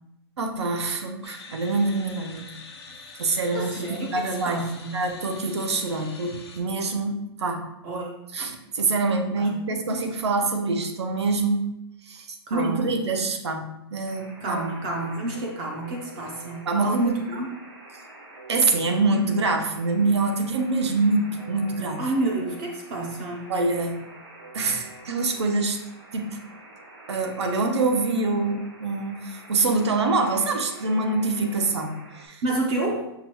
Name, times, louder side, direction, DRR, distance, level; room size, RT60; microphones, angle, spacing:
voice 1, 0.4-2.4 3.2-4.7 4.9-7.7 8.3-11.7 12.1-14.6 16.7-17.1 18.5-22.0 23.5-24.0 24.5-25.8 26.1-26.4 27.1-32.4, right 3 dB, 90° right, 5 dB, 0.7 m, -25 dB
sound 1, 1.2-6.6, left 4 dB, 75° left, 0.9 m, -45 dB
voice 2, 3.5-4.9 7.8-8.1 9.4-9.6 12.5-12.9 14.4-17.5 22.0-23.5 32.4-33.1, right 2 dB, 20° right, 0 dB, 0.4 m, -29 dB
Alarm, 14.0-32.3, right 2 dB, 50° right, 1.0 m, -46 dB
5.8 x 2.3 x 2.9 m, 0.84 s
hypercardioid pair, 170°, 14 cm